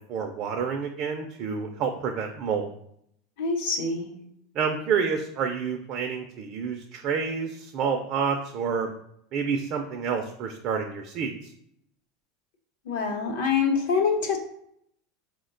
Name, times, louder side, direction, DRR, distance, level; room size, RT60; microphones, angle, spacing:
voice 1, 0.1-2.7 4.5-8.9 9.3-11.5, right 6 dB, 40° right, 3 dB, 0.3 m, -29 dB
voice 2, 3.4-4.1 12.9-14.4, left 5 dB, 70° left, 3 dB, 0.7 m, -25 dB
4.6 x 2.1 x 3.7 m, 0.72 s
supercardioid pair, 160°, 0 cm